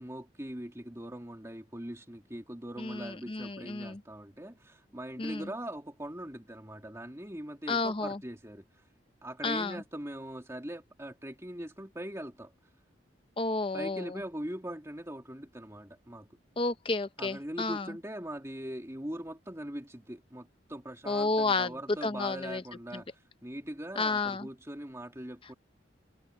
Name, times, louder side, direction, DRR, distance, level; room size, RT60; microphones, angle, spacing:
voice 1, 0.0-8.9 9.2-12.5 13.7-16.3 17.2-25.5, right 1 dB, 15° right, 2.7 m, -41 dB
voice 2, 2.8-4.0 5.2-5.5 7.7-8.2 9.4-9.8 13.4-14.2 16.6-17.9 21.1-21.7 22.0-22.6 22.9-23.0 24.0-24.5, left 3 dB, 30° left, 0.7 m, -31 dB
head